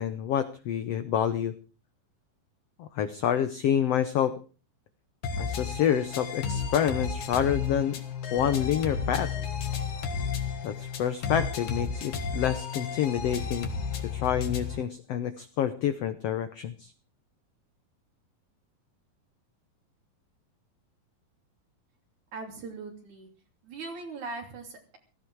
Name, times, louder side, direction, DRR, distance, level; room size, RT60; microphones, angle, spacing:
voice 1, 0.0-1.5 2.8-4.3 5.4-8.0 8.3-9.3 10.6-13.7 14.1-16.9, left 9 dB, 85° left, 11 dB, 1.4 m, -28 dB
sound 1, 5.2-14.8, left 5 dB, 60° left, 3.1 m, -33 dB
voice 2, 22.3-23.3 23.6-25.0, right 3 dB, 55° right, 4 dB, 4.3 m, -40 dB
16.5 x 15.0 x 4.7 m, 0.35 s
omnidirectional pair, 4.1 m